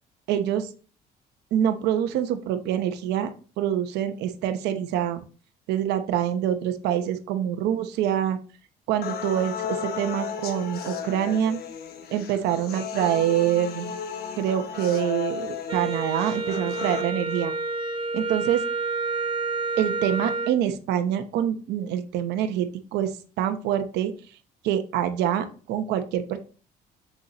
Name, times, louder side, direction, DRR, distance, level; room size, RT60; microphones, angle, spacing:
voice 1, 0.3-0.7 1.5-3.3 3.6-5.2 5.7-8.4 8.9-11.6 12.1-13.9 14.4-17.5 18.1-18.6 19.8-23.1 23.4-24.1 24.6-26.4, right 10 dB, 85° right, 7 dB, 0.8 m, -25 dB
sound 1, 9.0-17.0, left 8 dB, 70° left, 1.0 m, -34 dB
Wind instrument woodwind instrument, 15.7-20.6, right 3 dB, 30° right, 1.0 m, -29 dB
7.1 x 6.6 x 2.9 m, 0.37 s
cardioid pair, 110°, 17 cm